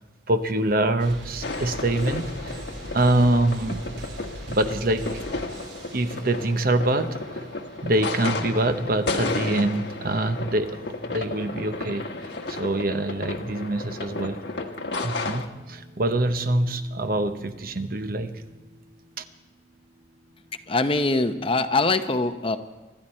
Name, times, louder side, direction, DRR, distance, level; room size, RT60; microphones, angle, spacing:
voice 1, 0.3-2.6 2.9-3.8 4.5-5.1 5.9-7.4 7.8-10.8 11.1-12.0 12.5-14.4 15.0-18.3 19.2-19.3, right 1 dB, 50° right, 9 dB, 0.9 m, -25 dB
sound 1, 1.0-20.9, right 1 dB, 75° right, 3.1 m, -44 dB
sound 2, 1.4-15.5, left 3 dB, 70° left, 1.3 m, -33 dB
voice 2, 20.7-22.6, left 2 dB, 30° left, 9 dB, 0.7 m, -23 dB
25.0 x 12.5 x 4.4 m, 1.2 s
head